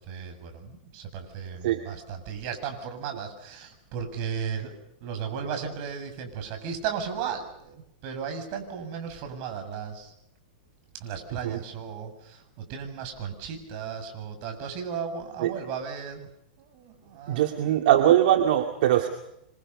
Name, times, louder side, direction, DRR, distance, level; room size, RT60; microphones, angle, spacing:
voice 1, 0.0-4.7 5.0-10.1 11.0-16.3 16.6-17.5, right 7 dB, 45° right, 6 dB, 7.1 m, -35 dB
voice 2, 17.3-19.1, right 12 dB, 65° right, 4 dB, 2.4 m, -21 dB
28.0 x 26.0 x 5.6 m, 0.80 s
hypercardioid pair, 135°, 5 cm